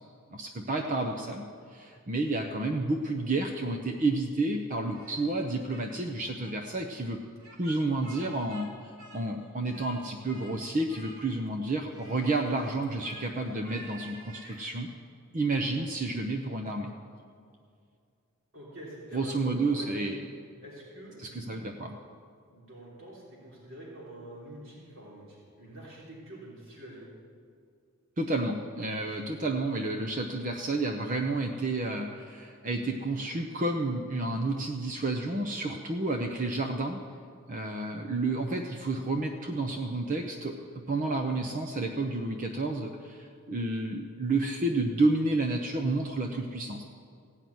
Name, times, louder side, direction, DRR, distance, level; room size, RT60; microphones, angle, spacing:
voice 1, 0.3-1.4 1.7-7.2 7.6-8.7 9.1-14.9 15.3-16.9 19.1-20.2 21.2-22.0 28.2-37.0 37.5-40.6 40.9-46.8, right 2 dB, 35° right, 2 dB, 0.7 m, -30 dB
voice 2, 2.2-2.5 18.5-19.9 20.6-21.6 22.5-27.1 40.7-41.0, right 1 dB, 65° right, -5 dB, 3.4 m, -47 dB
Speech, 4.9-5.9 6.2-6.5 7.4-8.7 9.0-10.0 10.3-10.6 10.9-11.5 11.9-14.6, right 2 dB, 85° right, 3.4 m, -50 dB
16.0 x 5.8 x 9.3 m, 2.3 s
head